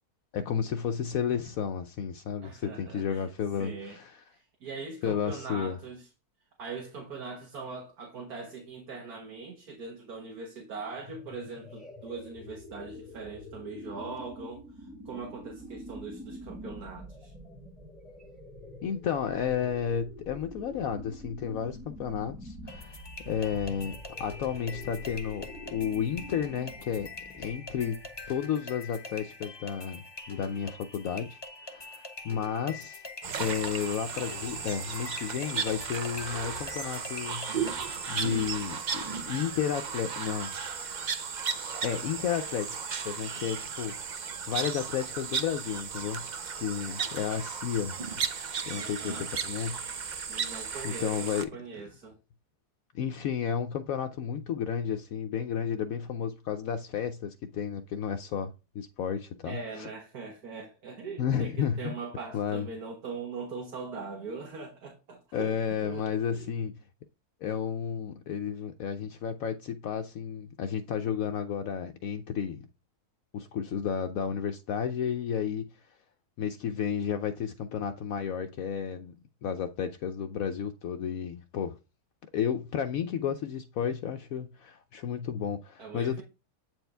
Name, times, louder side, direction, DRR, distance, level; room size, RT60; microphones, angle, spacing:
voice 1, 0.3-4.2 5.0-5.8 18.8-27.1 27.3-28.0 28.3-33.0 33.4-37.5 38.1-40.5 41.8-42.8 43.0-44.0 44.5-46.2 46.6-48.3 48.7-49.8 50.2-50.5 50.8-51.5 52.9-59.9 61.2-61.9 62.3-62.7 65.3-66.7 67.4-72.7 73.3-75.7 76.4-79.1 79.4-81.8 82.3-86.2, left 8 dB, 70° left, 1.0 m, -32 dB
voice 2, 2.4-3.2 3.6-4.0 4.3-6.1 6.6-14.6 15.1-17.3 48.7-49.3 50.3-52.2 59.4-66.5 85.8-86.2, right 4 dB, 70° right, 1.9 m, -41 dB
sound 1, 10.9-28.5, equal, ahead, 1.4 m, -46 dB
sound 2, 22.7-38.7, left 3 dB, 25° left, 0.5 m, -44 dB
sound 3, 33.2-51.4, right 6 dB, 55° right, 0.5 m, -35 dB
8.5 x 4.5 x 3.3 m
omnidirectional pair, 1.6 m